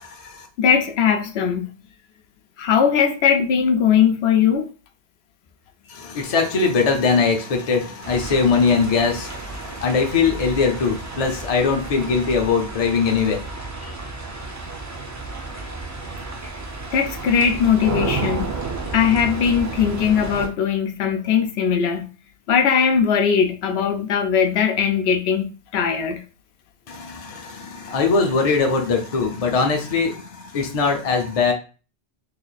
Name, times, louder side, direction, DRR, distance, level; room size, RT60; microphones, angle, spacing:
voice 1, 0.0-0.5 5.9-13.6 13.8-13.9 26.9-31.5, left 5 dB, 40° left, 0.7 m, -21 dB
voice 2, 0.6-1.7 2.6-4.7 16.9-18.5 18.9-22.1 22.5-25.4 25.7-26.2, left 7 dB, 80° left, 0.8 m, -19 dB
sound 1, 8.0-20.5, right 3 dB, 25° right, 0.4 m, -32 dB
3.2 x 2.4 x 3.9 m
omnidirectional pair, 1.1 m